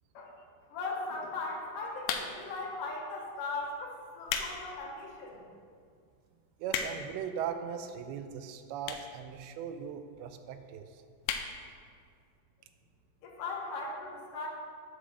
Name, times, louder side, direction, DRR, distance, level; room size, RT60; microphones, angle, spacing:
voice 1, 0.7-5.4 13.2-14.5, left 3 dB, 65° left, -4 dB, 2.8 m, -38 dB
sound 1, 2.0-2.6 3.3-3.5 4.0-4.6 5.0-5.1 5.7-5.8 6.0-6.1 6.3-7.2 8.0-8.1 8.8-9.2 9.5-9.6 9.8-9.9 10.1-10.2 10.5-10.7 11.2-11.5 11.9-12.0 12.2-12.3, left 7 dB, 80° left, 2.3 m, -34 dB
voice 2, 6.6-11.0, right 7 dB, 90° right, 8 dB, 2.5 m, -39 dB
9.6 x 3.9 x 6.1 m, 2.2 s
omnidirectional pair, 4.3 m